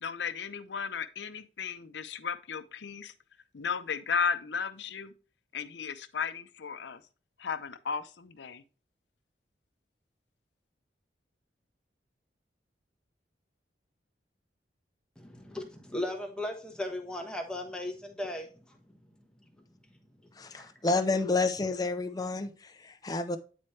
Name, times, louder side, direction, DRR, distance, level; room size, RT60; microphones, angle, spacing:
voice 1, 0.0-3.1 3.5-5.1 5.5-7.0 7.4-8.6, left 6 dB, 80° left, 0.6 m, -34 dB
voice 2, 15.2-18.8 20.5-20.7, left 1 dB, 5° left, 1.1 m, -37 dB
voice 3, 20.4-23.4, left 3 dB, 20° left, 0.6 m, -30 dB
9.2 x 4.3 x 3.1 m
head